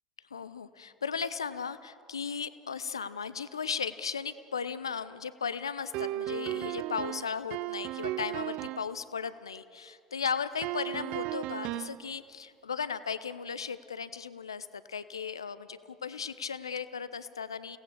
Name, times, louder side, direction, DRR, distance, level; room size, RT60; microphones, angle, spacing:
voice 1, 0.3-17.8, left 6 dB, 85° left, 15 dB, 0.6 m, -36 dB
sound 1, 5.9-8.9 10.6-12.0, right 15 dB, 55° right, 0.5 m, -35 dB
30.0 x 18.5 x 6.8 m, 2.5 s
figure-of-eight pair, 70°, 2 cm